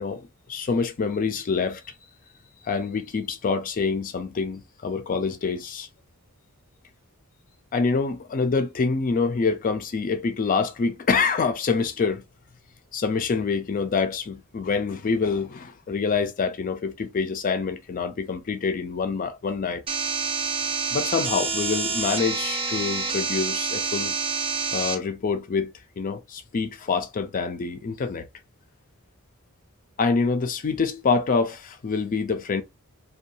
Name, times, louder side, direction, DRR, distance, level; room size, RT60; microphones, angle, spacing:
voice 1, 0.0-1.9 2.6-5.9 7.7-12.2 12.9-19.8 20.9-24.1 24.7-28.3 30.0-32.6, left 4 dB, 40° left, 0.4 m, -26 dB
sound 1, 19.9-25.0, right 4 dB, 25° right, 0.5 m, -27 dB
2.6 x 2.3 x 2.7 m
head